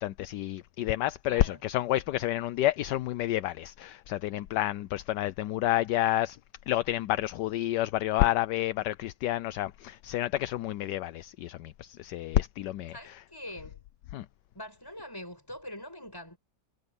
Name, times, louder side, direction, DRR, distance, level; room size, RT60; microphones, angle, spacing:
voice 1, 0.0-6.4 6.7-12.9 14.1-14.2, left 15 dB, 75° left, 1.2 m, -29 dB
voice 2, 1.2-1.6 12.9-13.8 14.6-16.4, left 1 dB, 10° left, 7.2 m, -43 dB
omnidirectional pair, 1.9 m